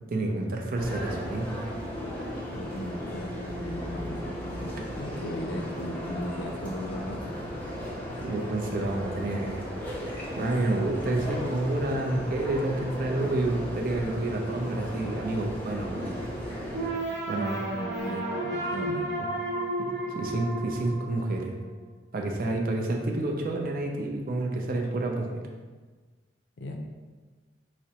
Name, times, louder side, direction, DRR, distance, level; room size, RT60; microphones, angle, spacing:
voice 1, 0.1-1.7 8.2-9.7 10.4-16.2 17.3-17.7 19.2-19.3 19.8-21.6 22.1-25.3, right 2 dB, 50° right, 1 dB, 0.4 m, -29 dB
sound 1, 0.8-16.9, equal, 10° left, 0.5 m, -36 dB
voice 2, 2.5-4.7 5.0-7.3 17.8-19.1 26.6-26.8, left 1 dB, 75° left, 3 dB, 0.4 m, -37 dB
sound 2, 16.7-21.7, right 1 dB, 65° right, 0.9 m, -32 dB
4.8 x 2.1 x 2.8 m, 1.4 s
head